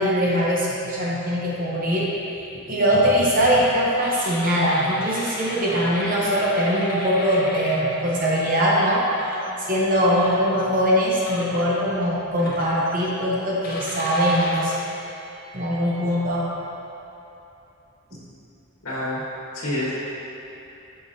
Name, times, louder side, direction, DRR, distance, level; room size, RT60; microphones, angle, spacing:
voice 1, 0.0-2.1 2.7-9.0 9.7-14.8 15.5-16.5 18.1-18.2, equal, 40° right, -5 dB, 0.8 m, -21 dB
sound 1, 4.0-8.6 9.1-9.5 10.1-10.8 11.3-11.6 12.4-13.1 13.6-15.9, left 1 dB, 40° left, 0.9 m, -36 dB
voice 2, 18.8-19.2 19.5-19.9, left 1 dB, 75° left, -7 dB, 1.5 m, -27 dB
8.0 x 5.9 x 2.7 m, 2.9 s
head